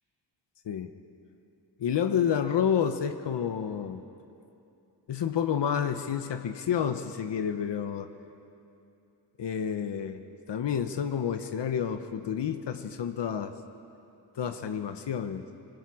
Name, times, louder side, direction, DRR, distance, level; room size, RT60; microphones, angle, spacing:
voice 1, 1.8-4.0 5.1-8.1 9.4-10.2 10.5-13.5 14.4-15.4, left 8 dB, 80° left, 8 dB, 0.9 m, -29 dB
25.5 x 21.5 x 4.9 m, 2.7 s
wide cardioid pair, 135°, 42 cm